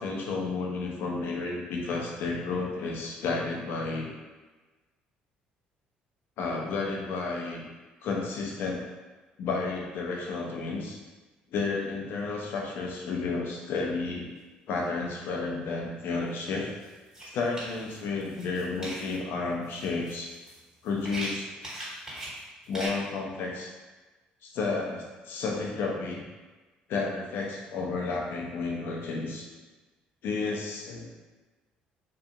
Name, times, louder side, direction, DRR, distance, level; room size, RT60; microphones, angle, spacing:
voice 1, 0.0-4.1 6.4-7.6 8.0-8.8 9.4-11.0 11.5-14.3 14.7-16.7 17.3-20.3 20.8-21.5 22.7-23.7 24.4-26.2 26.9-29.4 30.2-31.1, left 4 dB, 65° left, -1 dB, 0.6 m, -31 dB
sound 1, 16.3-16.4 16.8-19.2 19.6-22.9, right 1 dB, 20° right, 1.5 m, -40 dB
2.8 x 2.4 x 2.4 m, 1.2 s
hypercardioid pair, 60°, 4 cm